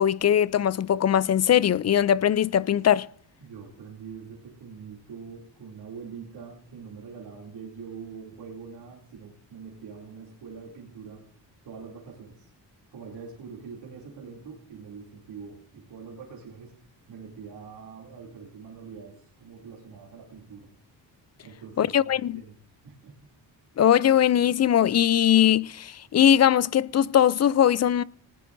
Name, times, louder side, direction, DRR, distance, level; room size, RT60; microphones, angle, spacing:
voice 1, 0.0-3.1 21.8-22.4 23.8-28.0, left 10 dB, 40° left, 0.4 m, -20 dB
voice 2, 3.4-11.2 11.6-12.5 12.9-16.7 17.1-20.7 21.4-22.6 22.8-23.1, right 6 dB, 80° right, 3.0 m, -44 dB
19.0 x 16.5 x 2.6 m
cardioid pair, 65°, 42 cm